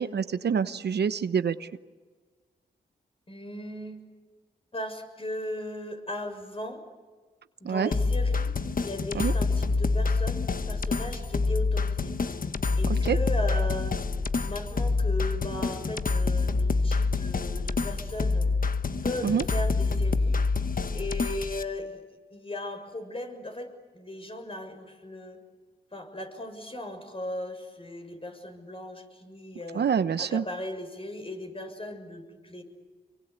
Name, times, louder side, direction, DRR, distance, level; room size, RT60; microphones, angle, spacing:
voice 1, 0.0-1.7 7.6-7.9 9.1-9.3 12.9-13.2 19.2-19.4 29.7-30.4, right 7 dB, 75° right, 12 dB, 1.0 m, -26 dB
voice 2, 3.3-4.0 4.7-6.8 7.6-8.5 8.8-12.2 12.8-13.9 14.4-18.5 19.0-20.4 20.9-22.0 22.3-25.4 25.9-29.9 30.2-32.6, left 1 dB, 35° left, 6 dB, 6.8 m, -37 dB
sound 1, 7.9-21.6, left 3 dB, 55° left, 1.3 m, -27 dB
26.0 x 23.5 x 8.4 m, 1.4 s
cardioid pair, 55°, 17 cm